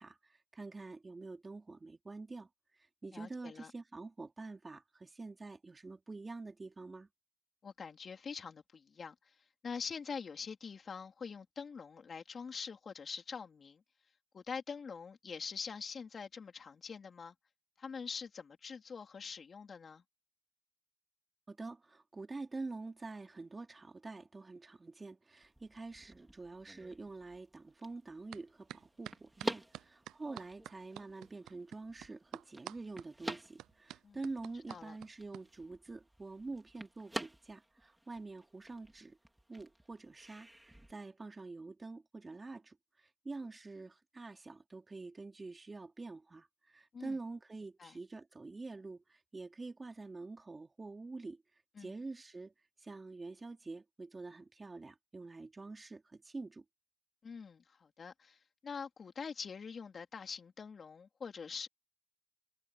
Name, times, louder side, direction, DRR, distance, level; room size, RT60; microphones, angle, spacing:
voice 1, 0.0-2.5 2.8-7.1 21.5-39.2 39.5-51.4 51.8-52.5 52.8-56.6, right 3 dB, 25° right, 3.7 m, -47 dB
voice 2, 3.1-3.7 7.6-9.3 9.6-13.8 14.3-17.3 17.8-20.0 34.0-34.2 34.7-35.0 46.9-47.2 47.8-48.0 51.8-51.9 57.2-61.7, left 5 dB, 45° left, 3.8 m, -45 dB
sound 1, 25.4-40.9, right 1 dB, 5° right, 3.6 m, -49 dB
sound 2, 28.3-28.4 28.7-35.4, right 14 dB, 85° right, 0.6 m, -48 dB
cardioid pair, 90°, 0 cm